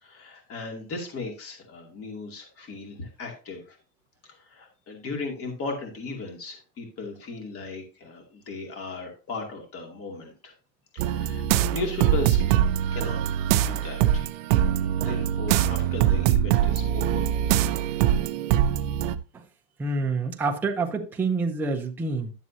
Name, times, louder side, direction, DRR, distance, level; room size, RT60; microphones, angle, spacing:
voice 1, 0.0-3.8 4.2-10.5 10.9-12.4 12.9-13.2 13.6-14.3 14.8-17.3, left 3 dB, 30° left, 2.4 m, -36 dB
sound 1, 11.0-19.2, right 11 dB, 55° right, 0.7 m, -23 dB
voice 2, 19.8-22.3, right 3 dB, 5° right, 0.6 m, -27 dB
11.0 x 7.3 x 2.7 m
supercardioid pair, 150°, 46 cm